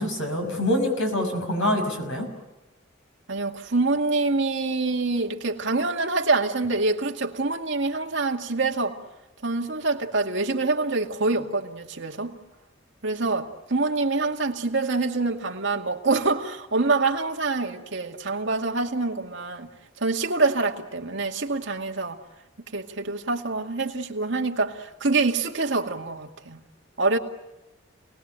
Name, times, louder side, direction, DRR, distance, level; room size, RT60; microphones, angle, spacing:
voice 1, 0.0-2.3, left 1 dB, 75° left, 6.2 m, -25 dB
voice 2, 3.3-9.0 9.4-12.3 13.0-19.7 20.0-22.2 22.7-26.6 27.0-27.2, right 3 dB, 65° right, 2.2 m, -25 dB
28.5 x 19.5 x 9.0 m
head